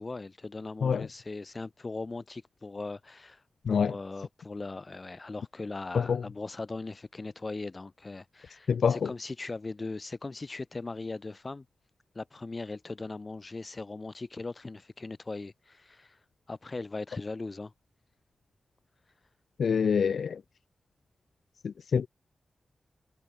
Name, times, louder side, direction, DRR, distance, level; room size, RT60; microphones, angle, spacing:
voice 1, 0.0-3.4 3.7-11.7 12.1-16.2 16.5-17.7, left 3 dB, 30° left, 4.0 m, -39 dB
voice 2, 19.6-20.4 21.6-22.1, left 6 dB, 80° left, 0.6 m, -25 dB
wide cardioid pair, 125°, 0 cm